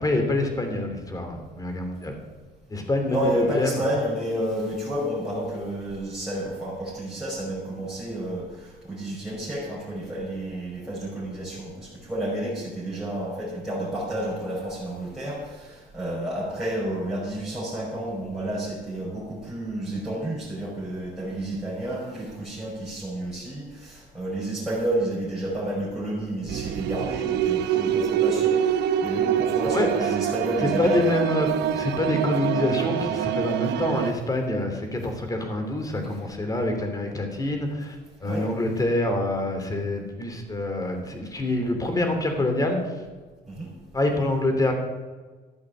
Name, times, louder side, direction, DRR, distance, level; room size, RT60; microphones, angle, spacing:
voice 1, 0.0-2.2 2.7-3.8 29.7-30.1 30.6-42.8 43.9-44.7, left 2 dB, 20° left, 5 dB, 3.1 m, -26 dB
voice 2, 3.1-31.2 38.2-38.5 43.5-43.7, right 1 dB, 5° right, -8 dB, 5.7 m, -30 dB
sound 1, 26.5-34.1, right 9 dB, 80° right, 0.9 m, -25 dB
13.5 x 8.1 x 7.8 m, 1.3 s
cardioid pair, 110°, 17 cm